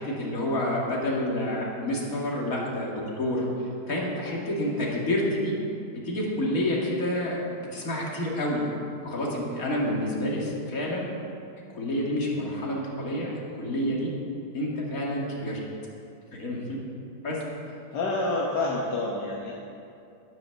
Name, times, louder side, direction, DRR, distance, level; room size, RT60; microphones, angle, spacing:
voice 1, 0.0-5.6 6.0-8.6 9.0-11.1 11.7-14.1 14.5-15.6 16.3-16.8 17.2-17.4, left 1 dB, 55° left, -3 dB, 2.6 m, -29 dB
voice 2, 17.9-19.5, left 2 dB, 75° left, -3 dB, 1.8 m, -28 dB
11.0 x 9.6 x 7.0 m, 2.6 s
omnidirectional pair, 1.8 m